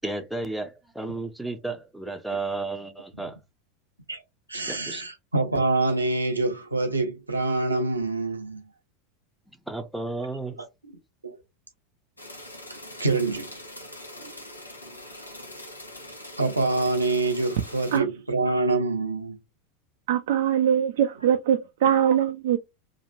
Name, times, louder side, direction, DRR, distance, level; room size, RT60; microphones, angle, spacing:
voice 1, 0.0-3.4 4.7-5.0 9.7-10.6, right 3 dB, 5° right, 0.7 m, -33 dB
voice 2, 4.5-8.6 11.2-11.4 12.7-13.5 14.2-14.3 16.4-19.4, right 3 dB, 85° right, 0.7 m, -26 dB
sound 1, 12.2-18.0, left 1 dB, 85° left, 0.8 m, -43 dB
voice 3, 20.1-22.6, right 9 dB, 60° right, 0.4 m, -22 dB
3.0 x 2.4 x 2.6 m
figure-of-eight pair, 85°, 0 cm